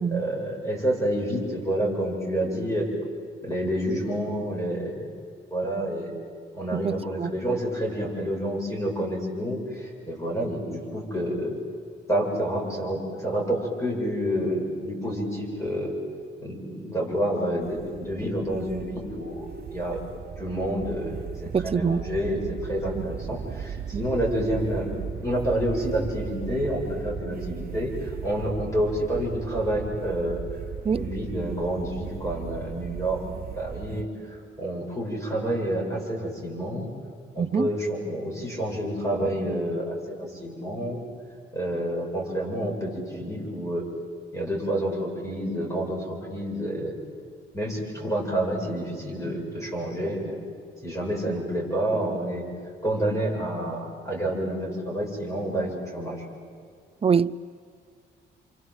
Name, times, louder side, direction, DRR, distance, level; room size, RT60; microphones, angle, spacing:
voice 1, 0.1-2.9 3.4-5.1 5.5-6.1 6.5-11.6 12.1-15.9 16.4-20.0 20.4-21.2 21.4-30.4 30.9-33.2 33.5-36.9 37.3-41.1 41.5-43.8 44.3-46.9 47.5-50.4 50.8-52.4 52.8-56.2, equal, 15° left, 8.0 m, -29 dB
voice 2, 6.7-7.3 21.5-22.0 23.0-23.1 23.9-24.1 30.8-31.1 37.4-37.7 57.0-57.3, right 6 dB, 30° right, 0.7 m, -25 dB
sound 1, 17.6-34.0, right 8 dB, 50° right, 1.0 m, -37 dB
29.5 x 24.5 x 8.0 m
cardioid pair, 90°, 20 cm